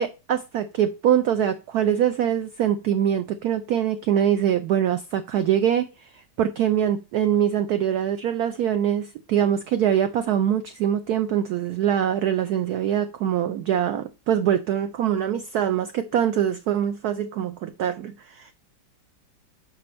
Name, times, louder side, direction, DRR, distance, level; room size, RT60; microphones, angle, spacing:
voice 1, 0.0-18.5, right 10 dB, 75° right, 0.8 m, -23 dB
6.0 x 4.9 x 4.2 m
omnidirectional pair, 2.1 m